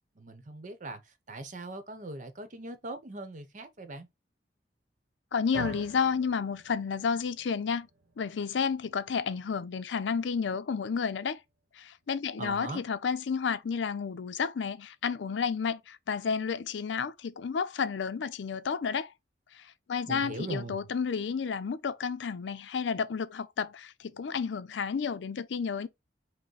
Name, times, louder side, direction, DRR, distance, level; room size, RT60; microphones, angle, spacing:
voice 1, 0.1-4.1 12.4-12.8 20.1-20.9, right 2 dB, 45° right, 0.8 m, -40 dB
voice 2, 5.3-7.9 8.2-11.4 11.7-19.1 19.5-25.9, left 6 dB, 90° left, 0.5 m, -31 dB
sound 1, 5.5-13.8, right 3 dB, 85° right, 1.0 m, -49 dB
5.3 x 2.1 x 3.9 m
head